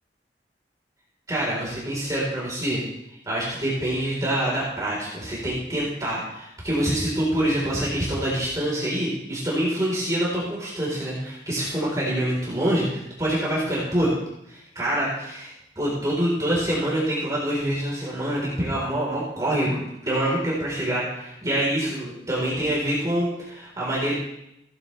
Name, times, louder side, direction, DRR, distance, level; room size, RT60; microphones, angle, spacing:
voice 1, 1.3-2.8 3.2-14.1 14.5-24.1, right 1 dB, 20° right, -5 dB, 4.2 m, -26 dB
16.5 x 11.0 x 3.4 m, 0.82 s
head